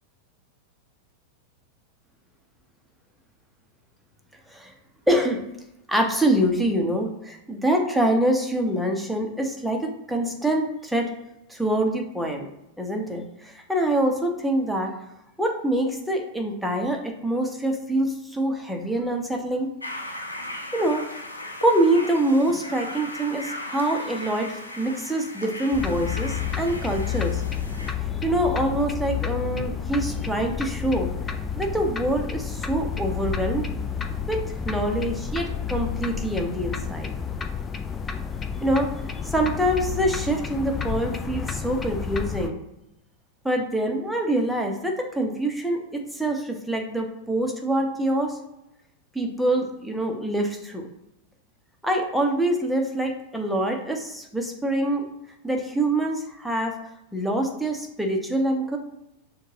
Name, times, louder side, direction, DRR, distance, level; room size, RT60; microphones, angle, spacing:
voice 1, 5.1-5.4 5.9-11.1 11.5-12.5 12.8-13.2 13.7-14.9 15.4-19.7 20.7-21.0 21.6-27.4 28.2-31.1 31.6-33.7 34.3-37.1 38.6-38.9 39.3-42.6 43.4-48.4 49.1-50.8 51.8-55.0 55.4-56.7 57.1-58.8, right 1 dB, ahead, 1 dB, 0.8 m, -25 dB
sound 1, 19.8-27.9, left 1 dB, 80° left, 0.6 m, -37 dB
sound 2, 25.7-42.5, left 7 dB, 20° left, 0.4 m, -30 dB
6.4 x 2.3 x 2.9 m, 0.88 s
figure-of-eight pair, 90°, 0 cm